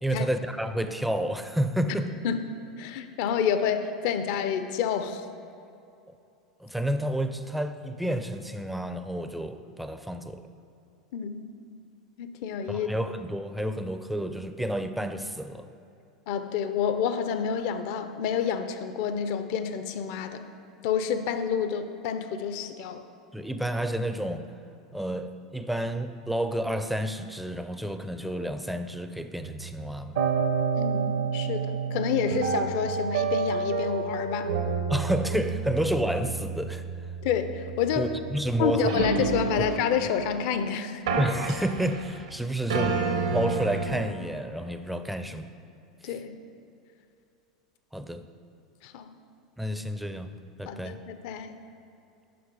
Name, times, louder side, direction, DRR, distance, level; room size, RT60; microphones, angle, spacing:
voice 1, 0.0-2.1 6.6-10.4 12.7-15.7 23.3-24.5 24.9-30.2 34.9-36.9 38.0-38.9 41.2-43.0 43.3-45.5 46.0-46.1 47.9-48.2 49.6-51.0, right 1 dB, ahead, 9 dB, 0.5 m, -30 dB
voice 2, 2.8-5.2 11.1-11.6 12.2-12.9 16.3-20.4 20.8-23.0 30.7-34.5 37.2-38.1 38.6-41.0 46.0-46.3 48.8-49.1 50.7-51.5, left 7 dB, 55° left, 9 dB, 0.6 m, -29 dB
sound 1, 29.4-40.6 41.1-42.3 42.7-44.1, right 5 dB, 70° right, 0.9 m, -29 dB
7.7 x 5.8 x 5.3 m, 2.7 s
figure-of-eight pair, 85°, 3 cm